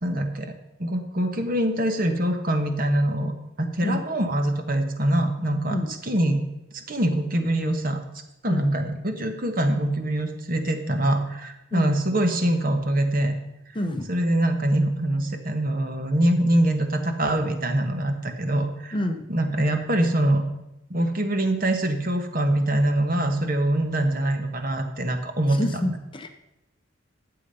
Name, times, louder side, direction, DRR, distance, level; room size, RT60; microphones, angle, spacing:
voice 1, 0.0-0.5 0.8-6.4 6.7-8.0 8.4-13.3 14.1-19.0 19.3-20.4 20.9-25.6 25.8-25.9, right 1 dB, 40° right, 6 dB, 1.2 m, -24 dB
voice 2, 13.7-14.1 18.9-19.2 25.5-26.3, left 1 dB, 25° left, 6 dB, 0.7 m, -28 dB
12.0 x 7.9 x 5.5 m, 0.92 s
head